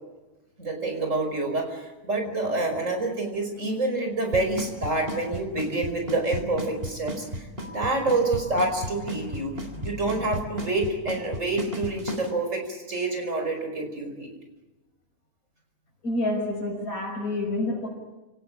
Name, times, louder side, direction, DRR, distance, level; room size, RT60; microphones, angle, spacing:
voice 1, 0.6-14.3, right 2 dB, 55° right, 4 dB, 5.6 m, -27 dB
Drum kit / Snare drum / Bass drum, 4.3-12.3, equal, 40° right, 3.7 m, -32 dB
Keyboard (musical), 7.6-10.1, left 2 dB, 10° right, 4.8 m, -48 dB
voice 2, 16.0-17.9, left 2 dB, 70° left, -4 dB, 6.3 m, -28 dB
29.0 x 18.5 x 8.9 m, 1.1 s
omnidirectional pair, 1.5 m